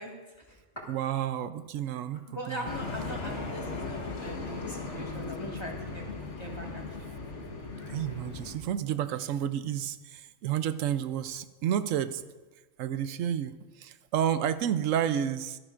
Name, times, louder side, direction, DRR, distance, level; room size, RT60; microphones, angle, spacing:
voice 1, 0.0-0.9 2.3-6.0 6.4-7.1, equal, 20° left, -1 dB, 1.8 m, -41 dB
voice 2, 0.9-2.7 7.9-12.2 12.8-15.6, right 10 dB, 85° right, 13 dB, 1.0 m, -30 dB
sound 1, 2.6-8.6, left 3 dB, 65° left, 1.7 m, -38 dB
23.0 x 10.0 x 2.5 m, 1.2 s
omnidirectional pair, 1.3 m